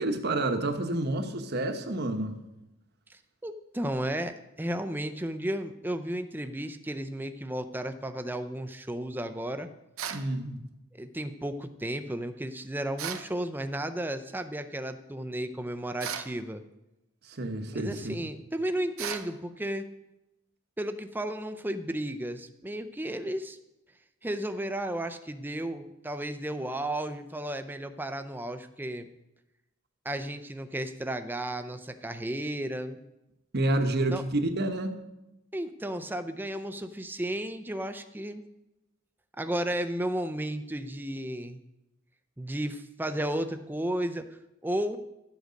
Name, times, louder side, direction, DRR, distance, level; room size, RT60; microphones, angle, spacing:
voice 1, 0.0-2.3 10.1-10.6 17.2-18.2 33.5-35.0, right 2 dB, 50° right, 6 dB, 1.1 m, -29 dB
voice 2, 3.1-9.7 10.9-16.6 17.7-19.8 20.8-23.6 24.2-29.1 30.0-33.0 34.1-34.2 35.5-38.4 39.4-41.6 42.4-44.3 44.6-45.0, right 1 dB, 10° right, 9 dB, 0.5 m, -33 dB
sound 1, 10.0-10.3 13.0-13.3 16.0-16.3 19.0-19.3, right 8 dB, 85° right, 0.9 m, -35 dB
12.5 x 8.1 x 5.2 m, 0.93 s
head